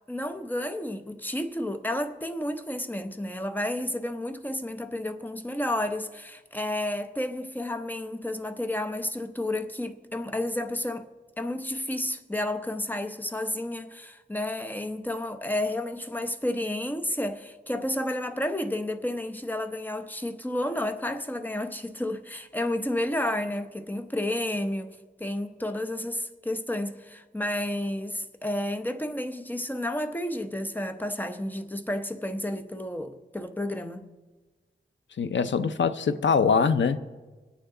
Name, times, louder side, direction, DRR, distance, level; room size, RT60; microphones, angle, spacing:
voice 1, 0.1-11.1 11.4-34.0, left 1 dB, 10° left, 0.8 m, -31 dB
voice 2, 35.2-37.0, left 5 dB, 80° left, 0.6 m, -23 dB
24.0 x 9.1 x 3.8 m
wide cardioid pair, 100°, 19 cm